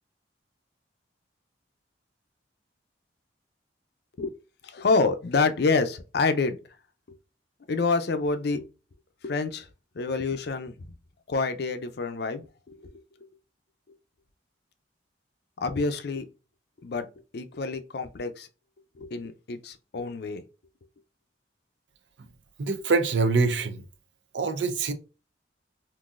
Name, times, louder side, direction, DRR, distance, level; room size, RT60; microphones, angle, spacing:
voice 1, 4.6-6.6 7.7-8.7 9.2-9.7 10.0-10.9 11.3-12.9 15.6-16.3 16.8-17.1 17.3-18.5 19.0-20.4, left 4 dB, 60° left, 0.5 m, -27 dB
voice 2, 22.6-23.8 24.3-24.9, right 4 dB, 80° right, 0.6 m, -24 dB
3.8 x 2.6 x 2.5 m
head